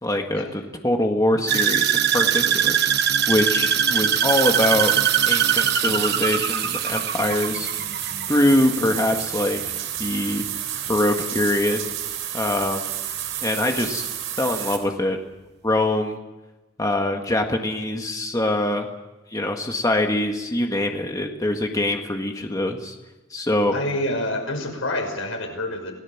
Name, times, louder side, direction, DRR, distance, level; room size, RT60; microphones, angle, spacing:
voice 1, 0.0-2.8 3.3-5.0 5.3-7.7 8.3-9.6 10.0-10.5 10.9-11.8 12.3-12.8 13.4-14.0 14.4-15.2 15.6-16.2 16.8-18.9 19.3-23.0 23.3-23.7, left 1 dB, 20° left, 3 dB, 1.8 m, -23 dB
sound 1, 1.5-9.7 10.0-10.4 10.9-11.0, right 9 dB, 55° right, 1.2 m, -22 dB
sound 2, 4.3-14.8, right 11 dB, 75° right, 4.0 m, -30 dB
voice 2, 23.7-25.9, left 1 dB, 85° left, 3 dB, 5.8 m, -27 dB
27.5 x 18.0 x 7.3 m, 1.1 s
head